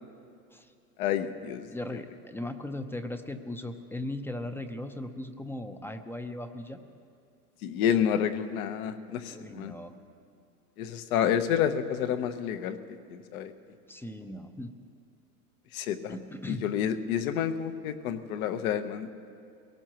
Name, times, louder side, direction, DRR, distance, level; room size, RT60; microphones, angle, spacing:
voice 1, 1.0-2.0 7.6-9.7 10.8-12.8 13.1-13.5 15.7-16.2 16.5-19.1, left 9 dB, 65° left, 9 dB, 1.2 m, -29 dB
voice 2, 1.7-6.8 9.3-9.9 13.9-14.7 16.1-16.6, left 1 dB, 5° left, 8 dB, 0.6 m, -38 dB
22.5 x 17.5 x 3.0 m, 2.4 s
hypercardioid pair, 110°, 46 cm